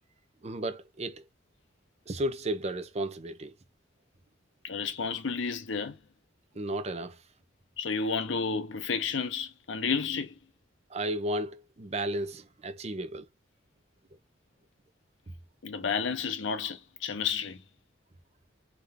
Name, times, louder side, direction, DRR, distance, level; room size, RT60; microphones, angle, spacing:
voice 1, 0.4-1.2 2.1-3.5 6.6-7.2 10.9-13.2, right 1 dB, 35° right, 0.6 m, -33 dB
voice 2, 4.6-6.0 7.8-10.3 15.6-17.6, left 5 dB, 70° left, 0.7 m, -31 dB
3.7 x 3.3 x 3.4 m
head